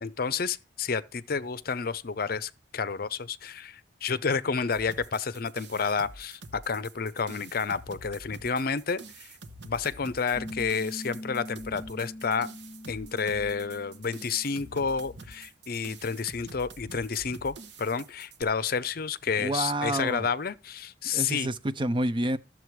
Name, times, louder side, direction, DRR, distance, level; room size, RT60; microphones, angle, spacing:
voice 1, 0.0-9.3 9.6-12.5 12.9-21.5, left 5 dB, 55° left, 0.6 m, -30 dB
sound 1, 4.7-18.4, right 2 dB, 70° right, 1.2 m, -47 dB
Piano, 10.3-15.5, left 1 dB, 25° left, 2.4 m, -43 dB
voice 2, 19.4-20.3 21.1-22.4, right 1 dB, 25° right, 0.5 m, -28 dB
12.5 x 7.5 x 4.7 m
head